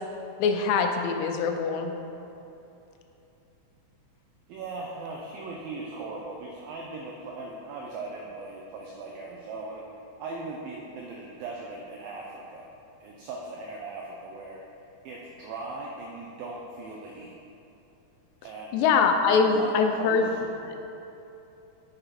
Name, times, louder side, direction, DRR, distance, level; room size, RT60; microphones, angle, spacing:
voice 1, 0.4-1.9 18.7-20.3 20.6-20.7, left 5 dB, 90° left, 5 dB, 2.8 m, -23 dB
voice 2, 4.5-9.9 10.2-12.7 13.0-14.6 15.1-17.3 18.4-18.7 19.5-20.4, right 3 dB, 90° right, -1 dB, 2.0 m, -39 dB
7.1 x 6.7 x 4.2 m, 2.9 s
omnidirectional pair, 4.8 m